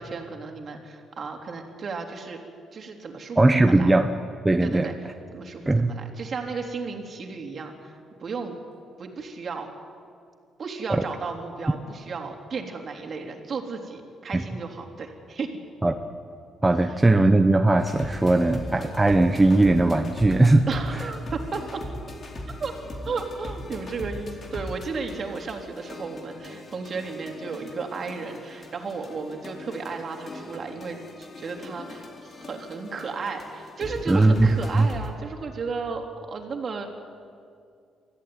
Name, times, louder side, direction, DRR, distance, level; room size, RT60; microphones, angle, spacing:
voice 1, 0.0-2.4 2.7-3.9 4.6-4.9 5.3-7.9 8.2-8.6 9.0-9.7 10.6-15.6 20.7-21.8 22.6-22.7 23.0-36.9, right 4 dB, 50° right, 2 dB, 3.3 m, -34 dB
voice 2, 3.4-4.1 4.4-4.9 5.7-5.9 14.3-14.4 15.8-15.9 16.6-20.6 34.1-34.5 34.7-34.9, right 2 dB, 15° right, 5 dB, 1.1 m, -19 dB
sound 1, 17.8-35.1, left 1 dB, 45° left, 4.0 m, -40 dB
24.5 x 15.0 x 9.5 m, 2.3 s
cardioid pair, 90°, 0 cm